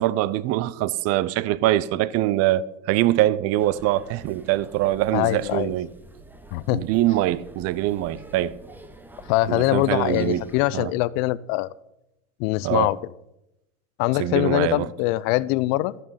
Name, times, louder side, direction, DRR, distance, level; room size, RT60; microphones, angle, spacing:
voice 1, 0.0-5.9 6.7-8.5 9.5-10.4 10.7-10.9 12.6-12.9 14.2-14.9, right 14 dB, 35° right, 0.7 m, -23 dB
sound 1, 3.6-10.6, right 2 dB, 5° right, 0.8 m, -47 dB
voice 2, 5.1-5.7 6.5-6.8 9.3-11.7 12.4-13.0 14.0-15.9, left 18 dB, 45° left, 0.6 m, -23 dB
12.5 x 11.0 x 5.7 m
supercardioid pair, 125°, 42 cm